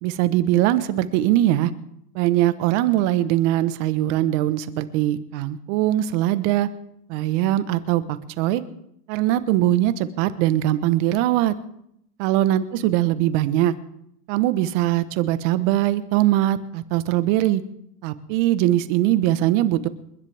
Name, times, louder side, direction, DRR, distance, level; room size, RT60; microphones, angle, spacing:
voice 1, 0.0-1.7 2.1-6.7 7.1-8.6 9.1-11.5 12.2-13.7 14.3-17.6 18.0-19.9, right 14 dB, 45° right, 13 dB, 1.2 m, -21 dB
29.0 x 10.5 x 3.5 m, 0.77 s
supercardioid pair, 130°, 49 cm